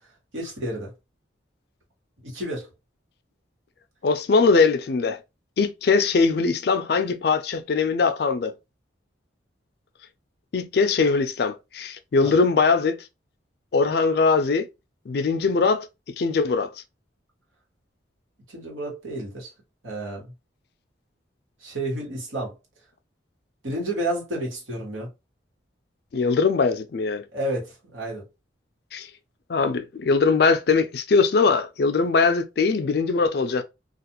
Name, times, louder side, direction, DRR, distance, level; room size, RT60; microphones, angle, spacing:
voice 1, 0.3-0.9 2.2-2.7 12.2-12.3 18.5-19.5 19.8-20.3 21.6-22.5 23.6-25.1 27.3-28.2, right 1 dB, 90° right, 1.3 m, -30 dB
voice 2, 4.0-5.2 5.6-8.5 10.5-13.0 13.7-14.7 15.1-15.9 16.2-16.7 26.1-27.2 28.9-29.1 29.5-33.6, left 4 dB, 55° left, 0.4 m, -21 dB
2.4 x 2.3 x 2.9 m
head